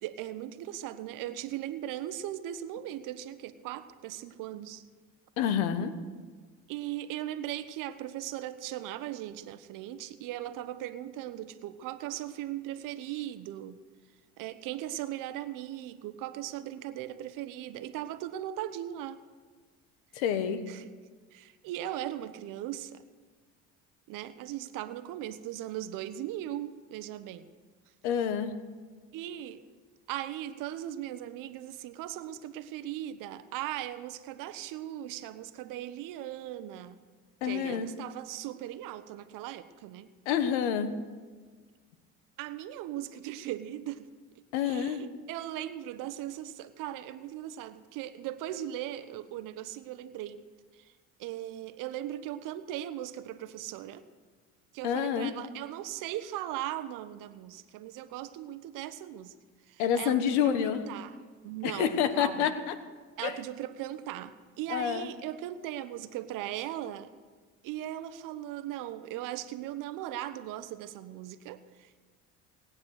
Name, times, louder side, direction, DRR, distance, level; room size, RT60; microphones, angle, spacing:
voice 1, 0.0-4.8 6.7-13.8 14.4-19.2 20.7-20.9 21.3-23.0 24.1-27.5 29.1-29.6 30.1-37.0 37.4-40.1 42.4-44.1 44.6-50.4 51.2-54.0 54.7-59.3 59.7-61.1 61.4-62.5 63.2-67.1 67.6-72.0, right 12 dB, 70° right, 12 dB, 1.1 m, -38 dB
voice 2, 5.4-5.9 20.1-20.6 28.0-28.5 37.4-37.9 40.2-40.9 44.5-45.0 54.8-55.3 59.8-60.8 61.6-62.8 63.2-63.4 64.7-65.1, left 8 dB, 90° left, 11 dB, 1.3 m, -28 dB
18.5 x 9.5 x 6.5 m, 1.5 s
supercardioid pair, 85°, 33 cm